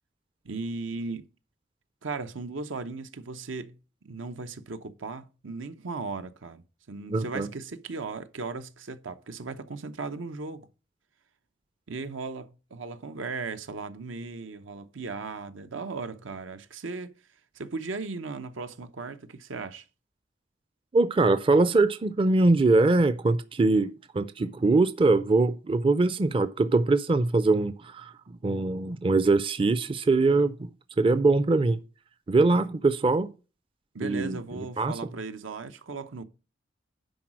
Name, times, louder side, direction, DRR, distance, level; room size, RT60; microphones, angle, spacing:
voice 1, 0.4-1.3 2.0-3.8 4.0-6.6 6.9-10.7 11.9-17.1 17.5-19.9 33.9-36.2, right 3 dB, 85° right, 0.8 m, -37 dB
voice 2, 7.1-7.5 20.9-30.7 31.0-31.8 32.3-33.3 34.0-34.4 34.8-34.9, right 3 dB, 25° right, 0.4 m, -23 dB
10.5 x 4.0 x 6.1 m
head